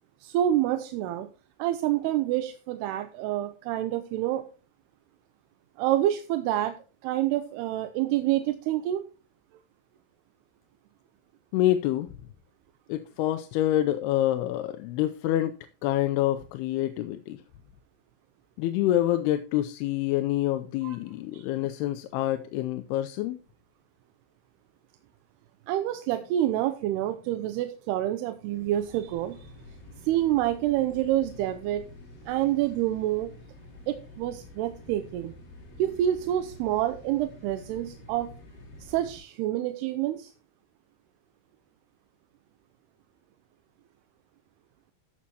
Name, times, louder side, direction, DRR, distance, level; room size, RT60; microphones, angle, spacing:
voice 1, 0.2-1.3 1.6-4.5 5.8-6.8 7.0-9.0 20.8-21.0 21.3-21.4 25.7-29.5 30.0-31.9 32.3-33.3 33.9-35.3 35.8-38.3 38.8-40.3, right 13 dB, 85° right, 2.7 m, -27 dB
voice 2, 11.5-12.1 12.9-15.6 15.8-17.4 18.6-23.4, left 13 dB, 80° left, 2.6 m, -27 dB
sound 1, 28.5-39.2, left 1 dB, 30° left, 2.8 m, -48 dB
13.5 x 7.4 x 2.9 m
omnidirectional pair, 4.7 m